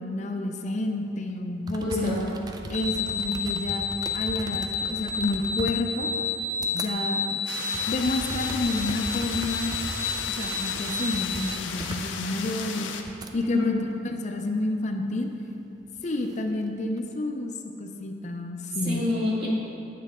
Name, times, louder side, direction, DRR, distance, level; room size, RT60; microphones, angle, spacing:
voice 1, 0.0-2.2 2.7-3.8 4.1-6.1 6.7-7.4 7.9-9.8 10.4-12.9 13.3-15.3 16.0-17.5 17.8-19.1, left 2 dB, 40° left, 4 dB, 0.5 m, -29 dB
sound 1, 1.3-1.4 1.6-6.9 7.3-13.3 13.9-14.4 15.6-17.1, right 1 dB, 20° right, 0.4 m, -39 dB
voice 2, 1.8-2.2 13.4-13.8 18.8-19.5, left 2 dB, 55° right, -6 dB, 2.2 m, -27 dB
sound 2, 2.7-11.5, left 5 dB, 5° left, 0.8 m, -31 dB
sound 3, 7.5-13.0, left 6 dB, 80° left, 0.7 m, -35 dB
9.2 x 8.5 x 3.7 m, 2.9 s
head